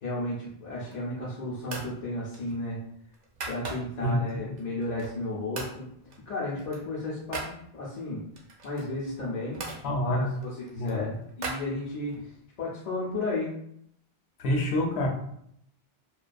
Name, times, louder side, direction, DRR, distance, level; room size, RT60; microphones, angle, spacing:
voice 1, 0.0-2.8 3.5-5.9 6.3-8.2 8.6-9.6 10.0-11.1 11.4-13.5, left 2 dB, 50° left, -6 dB, 0.5 m, -33 dB
sound 1, 0.7-1.2 1.6-2.0 2.3-4.1 4.6-5.3 5.5-5.8 6.1-7.6 8.3-9.8 10.4-12.2, right 3 dB, 55° right, 0.5 m, -40 dB
voice 2, 4.0-4.4 9.8-10.3 10.7-11.0 14.4-15.1, left 1 dB, 75° left, 1 dB, 0.8 m, -27 dB
2.2 x 2.2 x 2.4 m, 0.70 s
omnidirectional pair, 1.1 m